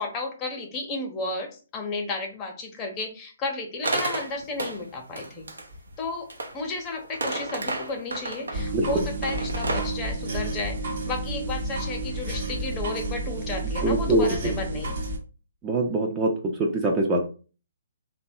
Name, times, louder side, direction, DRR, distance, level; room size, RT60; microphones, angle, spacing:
voice 1, 0.0-5.5 6.0-10.8 11.1-14.9, left 3 dB, 25° left, 2 dB, 0.7 m, -33 dB
sound 1, 3.8-4.8 5.1-6.6 7.0-8.6 9.2-9.9, right 2 dB, 80° right, 0.6 m, -31 dB
sound 2, 8.5-15.2, right 2 dB, 55° right, 0.9 m, -31 dB
voice 2, 13.8-14.5 15.6-17.3, right 2 dB, 20° right, 1 dB, 0.5 m, -24 dB
2.9 x 2.2 x 2.7 m, 0.36 s
figure-of-eight pair, 135°, 0 cm